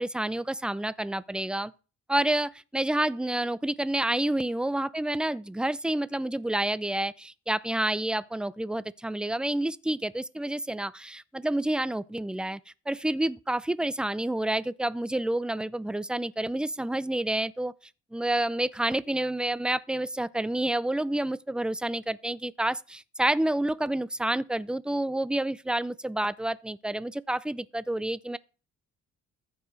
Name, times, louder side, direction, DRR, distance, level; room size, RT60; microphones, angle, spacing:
voice 1, 0.0-1.7 2.1-12.6 12.9-17.7 18.1-28.4, right 1 dB, 5° right, 0.4 m, -29 dB
14.5 x 4.9 x 4.0 m
cardioid pair, 90°, 30 cm